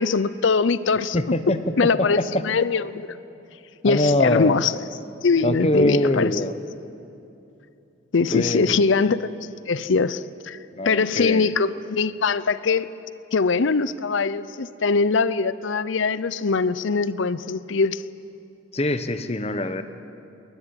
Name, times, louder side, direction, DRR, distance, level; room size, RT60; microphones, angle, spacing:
voice 1, 0.0-1.2 1.8-3.2 3.8-4.7 5.2-6.3 8.1-9.4 9.7-10.6 10.8-12.9 13.3-18.0, left 4 dB, 70° left, 17 dB, 0.6 m, -22 dB
voice 2, 1.1-2.4 3.8-4.6 5.4-6.6 8.3-8.8 10.7-11.5 18.7-19.8, left 1 dB, 30° left, 10 dB, 1.0 m, -23 dB
21.0 x 20.0 x 9.9 m, 2.8 s
head